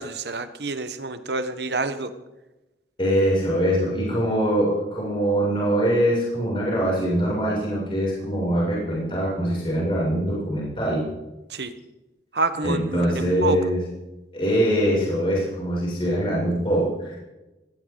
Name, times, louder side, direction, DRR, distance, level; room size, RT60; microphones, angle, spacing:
voice 1, 0.0-2.1 11.5-11.8 12.3-13.6, right 3 dB, 75° right, 11 dB, 1.3 m, -28 dB
voice 2, 3.0-11.0 12.6-13.8 14.3-17.2, equal, 30° left, -6 dB, 7.1 m, -23 dB
19.5 x 18.0 x 4.0 m, 1.0 s
head